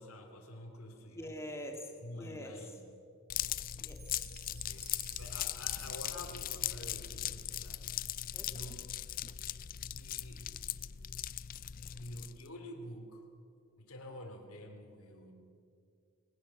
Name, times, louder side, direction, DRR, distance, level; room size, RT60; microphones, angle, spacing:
voice 1, 0.0-1.3 2.0-2.8 4.5-7.9 8.5-8.8 9.9-10.5 11.9-13.3 13.8-15.3, left 1 dB, 85° left, 2 dB, 3.1 m, -48 dB
voice 2, 1.0-2.8 3.7-4.3 8.3-8.8, equal, 15° left, 3 dB, 2.1 m, -46 dB
sound 1, 3.3-12.5, left 12 dB, 40° left, 0.4 m, -39 dB
Chime, 3.9-8.1, right 5 dB, 80° right, 5.7 m, -57 dB
21.0 x 19.0 x 7.2 m, 2.4 s
head